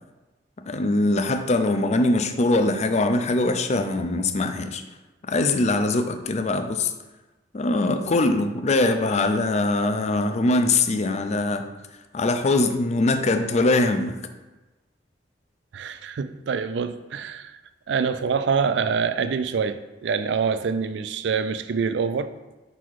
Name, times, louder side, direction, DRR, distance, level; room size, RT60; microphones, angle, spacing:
voice 1, 0.6-4.8 5.2-6.9 7.5-11.6 12.1-14.2, left 2 dB, 40° left, 8 dB, 0.5 m, -22 dB
voice 2, 15.7-17.6 17.9-22.3, right 5 dB, 70° right, 12 dB, 0.4 m, -25 dB
5.9 x 4.1 x 4.6 m, 1.1 s
head